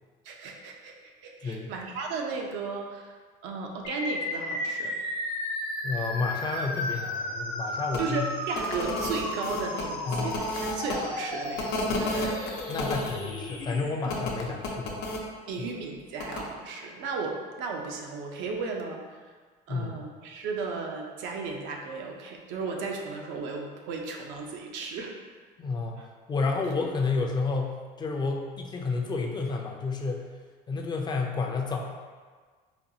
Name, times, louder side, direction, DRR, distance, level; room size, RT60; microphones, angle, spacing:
voice 1, 0.2-3.2 3.4-5.0 8.0-12.5 14.4-14.6 15.5-19.2 19.7-25.1 26.0-26.1, right 4 dB, 75° right, 1 dB, 0.6 m, -35 dB
sound 1, 3.8-13.8, left 2 dB, 85° left, 1.0 m, -34 dB
voice 2, 5.8-8.3 10.1-10.4 12.7-15.0 15.6-15.7 19.7-19.9 25.6-30.3 30.7-31.8, left 4 dB, 25° left, 1 dB, 0.4 m, -30 dB
sound 2, 7.9-8.0 8.5-10.9 11.6-13.1 14.1-15.2 16.2-16.4, left 2 dB, 70° left, 0.6 m, -32 dB
4.2 x 2.3 x 2.7 m, 1.5 s
cardioid pair, 120°, 18 cm